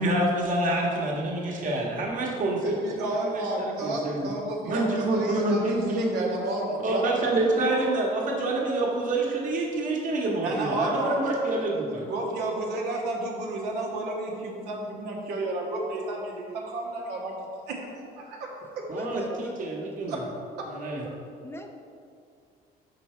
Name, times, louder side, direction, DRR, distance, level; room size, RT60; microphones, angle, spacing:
voice 1, 0.0-2.7 3.2-4.3 4.7-6.3 6.8-12.0 18.9-20.2 20.6-21.0, right 2 dB, 50° right, -2 dB, 1.4 m, -27 dB
voice 2, 2.6-7.0 7.5-7.8 10.4-11.2 12.1-17.4 17.7-18.9 20.1-20.2 20.6-20.7, right 2 dB, 85° right, -1 dB, 1.2 m, -31 dB
voice 3, 19.0-19.5 19.9-20.0 21.4-21.7, left 1 dB, 15° left, 3 dB, 0.5 m, -39 dB
6.1 x 4.6 x 4.4 m, 2.4 s
cardioid pair, 110°, 17 cm